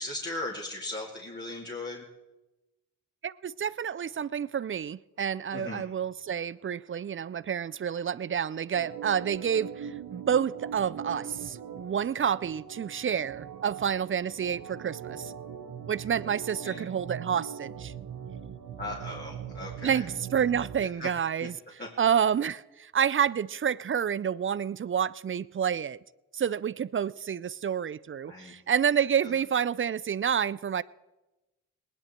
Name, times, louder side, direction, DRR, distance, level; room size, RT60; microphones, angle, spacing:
voice 1, 0.0-2.0 5.5-5.8 16.6-16.8 18.8-20.0 21.0-21.1 21.8-21.9 28.3-28.5 29.2-29.3, left 2 dB, 25° left, 2.4 m, -37 dB
voice 2, 3.2-15.3 15.9-17.9 19.8-21.5 22.0-26.0 26.3-30.8, right 8 dB, 35° right, 0.4 m, -29 dB
Organ, 8.7-20.9, right 8 dB, 70° right, 1.1 m, -41 dB
19.5 x 10.0 x 4.4 m
supercardioid pair, 45°, 38 cm